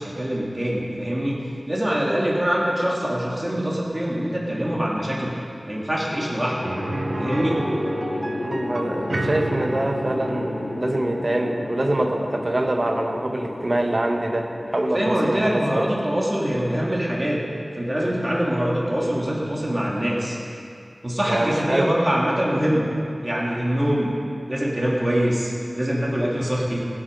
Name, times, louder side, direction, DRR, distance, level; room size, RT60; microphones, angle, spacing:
voice 1, 0.0-5.3 5.7-6.7 7.2-7.6 14.9-17.4 17.8-20.4 21.0-22.9 23.2-24.1 24.5-26.9, equal, 35° right, -4 dB, 2.8 m, -24 dB
sound 1, 6.1-18.4, left 2 dB, 75° left, 0.5 m, -34 dB
sound 2, 6.6-16.4 16.7-16.8 19.3-19.4, right 2 dB, 75° right, 0.6 m, -33 dB
voice 2, 8.4-15.8 21.2-21.9, right 1 dB, 50° right, 3 dB, 1.2 m, -25 dB
16.0 x 8.8 x 5.4 m, 2.4 s
wide cardioid pair, 45°, 0 cm